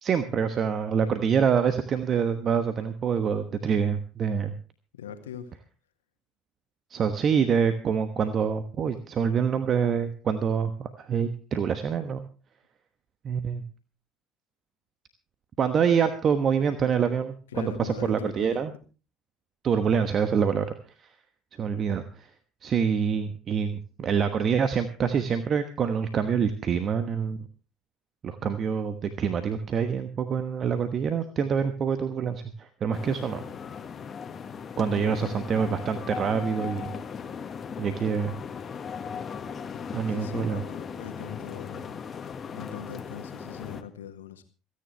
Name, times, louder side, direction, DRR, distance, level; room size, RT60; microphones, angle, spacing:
voice 1, 0.0-4.6 6.9-12.2 13.2-13.6 15.6-18.7 19.6-20.7 21.0-21.1 21.6-22.3 22.6-27.4 28.2-33.4 34.8-36.9 37.8-38.3 39.9-40.6, right 7 dB, 40° right, 10 dB, 1.2 m, -26 dB
voice 2, 4.9-5.5 17.5-18.3 34.9-35.6 40.1-41.9 42.5-44.4, left 8 dB, 75° left, 7 dB, 1.7 m, -41 dB
sound 1, 32.9-43.8, left 6 dB, 35° left, 1.5 m, -38 dB
27.0 x 9.8 x 3.2 m, 0.35 s
figure-of-eight pair, 60°, 0 cm